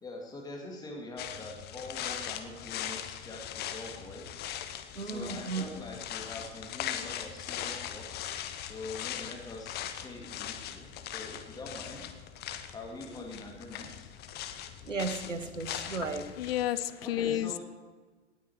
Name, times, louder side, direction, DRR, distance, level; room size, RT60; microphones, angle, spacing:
voice 1, 0.0-4.3 5.0-8.2 8.6-12.1 12.7-14.1 17.0-17.6, left 2 dB, 10° left, 0 dB, 2.4 m, -44 dB
sound 1, 1.2-16.7, left 10 dB, 25° left, 1.0 m, -40 dB
voice 2, 5.0-5.7 14.9-16.2, right 4 dB, 85° right, 9 dB, 1.4 m, -34 dB
voice 3, 16.0-17.6, left 12 dB, 55° left, 14 dB, 0.8 m, -32 dB
18.0 x 8.9 x 4.9 m, 1.3 s
figure-of-eight pair, 100°, 36 cm